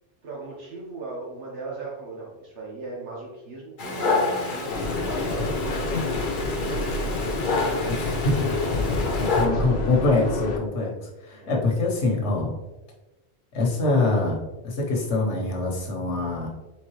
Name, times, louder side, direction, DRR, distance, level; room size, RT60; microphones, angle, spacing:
voice 1, 0.2-6.1 6.7-9.7 11.3-11.5, right 3 dB, 85° right, -4 dB, 1.4 m, -38 dB
Dog, 3.8-9.5, left 3 dB, 50° left, 0.9 m, -29 dB
sound 1, 4.7-10.6, left 2 dB, 70° left, 1.0 m, -28 dB
voice 2, 7.9-8.5 8.9-12.6 13.5-14.4 14.6-16.5, left 2 dB, 90° left, -1 dB, 1.4 m, -24 dB
4.4 x 3.7 x 3.1 m, 1.0 s
omnidirectional pair, 1.1 m